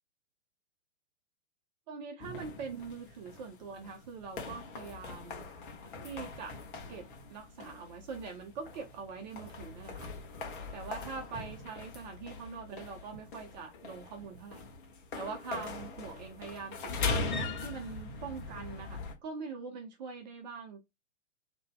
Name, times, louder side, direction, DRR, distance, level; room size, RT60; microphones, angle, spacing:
voice 1, 1.9-5.5 6.0-6.6 6.9-10.1 10.7-14.6 15.1-20.8, right 5 dB, 35° right, 0.9 m, -43 dB
sound 1, 2.2-19.1, left 4 dB, 40° left, 1.2 m, -41 dB
3.9 x 3.0 x 3.6 m
figure-of-eight pair, 115°, 37 cm